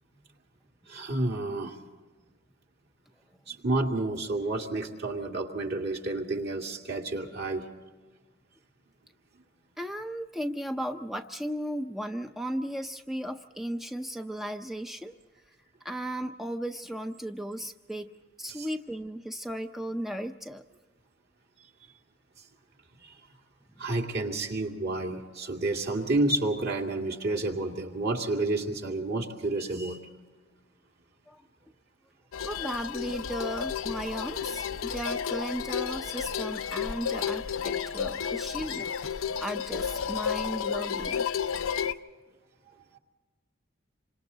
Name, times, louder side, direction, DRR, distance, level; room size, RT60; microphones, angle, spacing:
voice 1, 0.9-1.7 3.5-7.7 18.5-18.7 23.0-23.2 23.8-30.1 41.6-41.7 42.9-43.0, right 2 dB, 55° right, 1 dB, 2.4 m, -30 dB
voice 2, 9.8-15.1 15.8-18.1 18.4-20.6 23.8-23.9 31.3-31.5 32.4-41.3, equal, ahead, 6 dB, 0.5 m, -36 dB
sound 1, 32.3-41.9, left 7 dB, 85° left, 0.6 m, -32 dB
27.5 x 25.5 x 4.0 m, 1.3 s
head